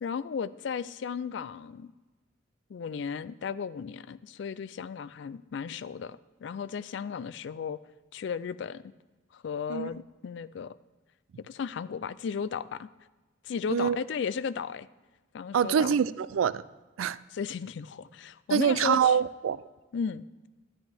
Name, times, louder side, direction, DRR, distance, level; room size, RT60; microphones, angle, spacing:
voice 1, 0.0-1.9 2.7-7.8 8.1-8.8 9.3-10.7 11.4-12.9 13.4-14.9 15.3-16.0 17.3-19.2 19.9-20.2, left 6 dB, 60° left, 16 dB, 0.3 m, -35 dB
voice 2, 15.5-16.6 17.0-17.2 18.5-19.6, right 7 dB, 90° right, 17 dB, 0.3 m, -25 dB
10.5 x 10.5 x 3.4 m, 1.2 s
head